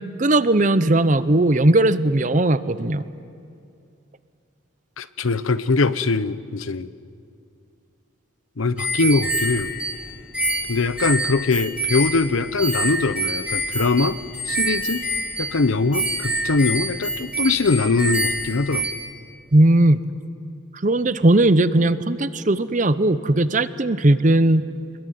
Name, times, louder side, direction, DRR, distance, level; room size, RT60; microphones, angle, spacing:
voice 1, 0.2-3.1 19.5-20.0 20.8-24.6, right 2 dB, 40° right, 14 dB, 0.7 m, -18 dB
voice 2, 5.0-6.9 8.6-9.7 10.7-14.2 14.5-15.0 15.4-18.9, left 3 dB, 90° left, 14 dB, 0.8 m, -22 dB
sound 1, 8.8-18.9, right 1 dB, 5° right, 2.4 m, -26 dB
26.5 x 21.5 x 9.4 m, 2.4 s
head